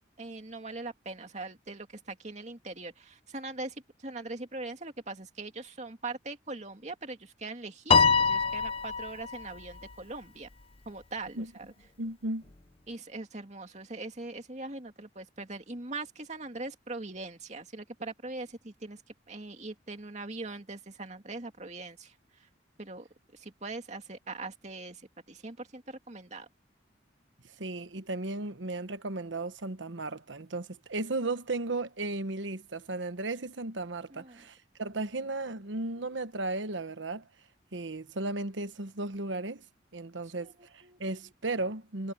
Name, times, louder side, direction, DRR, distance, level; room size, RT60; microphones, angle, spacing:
voice 1, 0.2-10.5 10.9-11.7 12.9-19.0 19.3-22.1 22.8-25.0 25.3-26.5 34.1-34.5 40.4-41.0, right 3 dB, 40° right, 2.5 m, -41 dB
Piano, 7.9-9.4, left 5 dB, 30° left, 0.9 m, -24 dB
voice 2, 12.0-12.4 27.6-37.3 37.7-39.6 39.9-42.1, right 2 dB, 80° right, 1.2 m, -35 dB
head